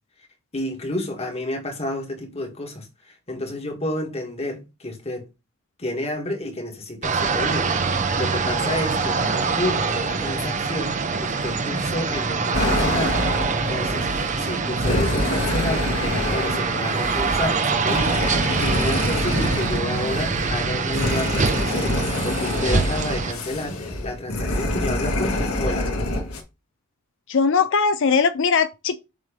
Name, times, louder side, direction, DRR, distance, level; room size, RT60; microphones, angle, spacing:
voice 1, 0.5-5.2 5.8-7.7 8.2-14.1 14.4-25.9, left 1 dB, 30° left, 1.8 m, -30 dB
sound 1, 7.0-23.3, right 4 dB, 35° right, 0.7 m, -24 dB
sound 2, 12.5-26.4, left 1 dB, 80° left, 1.7 m, -26 dB
voice 2, 27.3-29.0, left 5 dB, 60° left, 0.5 m, -20 dB
7.4 x 3.3 x 5.1 m
head